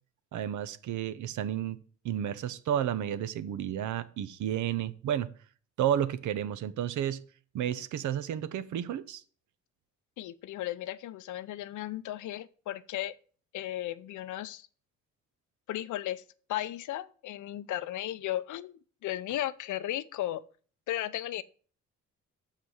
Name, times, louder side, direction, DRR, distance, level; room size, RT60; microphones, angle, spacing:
voice 1, 0.3-5.3 5.8-7.2 7.5-9.2, right 10 dB, 75° right, 0.8 m, -32 dB
voice 2, 10.2-13.1 13.5-14.7 15.7-16.2 16.5-20.4 20.9-21.4, left 13 dB, 75° left, 0.7 m, -35 dB
6.7 x 5.9 x 7.2 m
cardioid pair, 90°, 30 cm